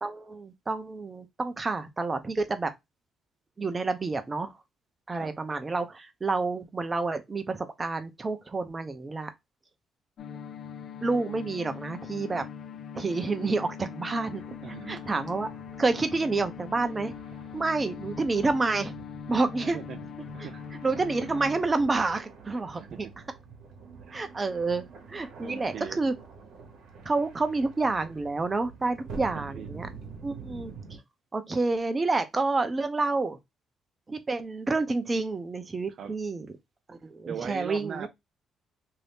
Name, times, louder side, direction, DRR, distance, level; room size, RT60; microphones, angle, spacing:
voice 1, 0.0-2.7 3.6-4.5 5.1-9.3 11.0-12.4 12.9-14.4 14.9-15.5 15.8-17.1 17.5-18.9 19.3-19.8 20.8-23.1 24.1-24.8 25.1-26.1 27.0-29.9 30.2-31.0 31.3-33.4 34.1-36.5 36.9-38.1, right 3 dB, 25° right, 0.7 m, -29 dB
sound 1, 10.2-21.6, left 7 dB, 60° left, 0.4 m, -41 dB
sound 2, 14.3-31.0, right 5 dB, 80° right, 1.0 m, -47 dB
voice 2, 14.6-15.2 19.6-20.1 20.3-20.6 22.7-23.1 24.0-24.2 25.4-26.0 29.5-29.7 35.9-36.2 37.3-38.1, right 8 dB, 65° right, 0.4 m, -40 dB
2.7 x 2.7 x 3.4 m
cardioid pair, 90°, 0 cm